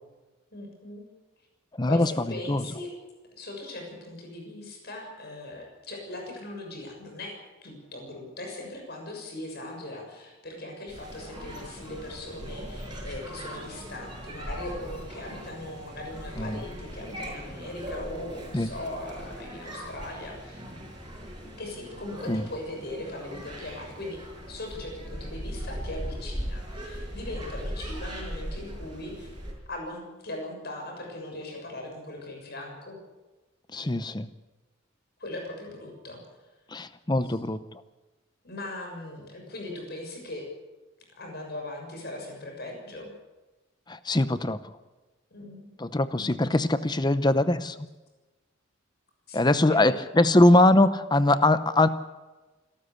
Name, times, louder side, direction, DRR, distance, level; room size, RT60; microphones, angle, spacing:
voice 1, 0.5-1.0 1.9-2.9 3.3-7.3 7.6-20.6 21.6-24.2 24.5-29.4 29.7-33.0 35.2-36.2 37.2-37.4 38.4-40.4 41.2-43.1 45.3-45.7 46.2-46.7 49.3-50.0, left 1 dB, 50° left, 2 dB, 6.7 m, -39 dB
voice 2, 1.8-2.1 2.5-2.6 16.4-16.6 18.5-18.7 22.3-22.4 33.7-34.3 36.7-37.6 43.9-44.6 45.8-47.9 49.3-51.9, left 2 dB, 20° left, 13 dB, 0.7 m, -22 dB
sound 1, 10.9-29.5, equal, 20° right, 6.0 m, -39 dB
26.5 x 13.0 x 8.3 m, 1.2 s
head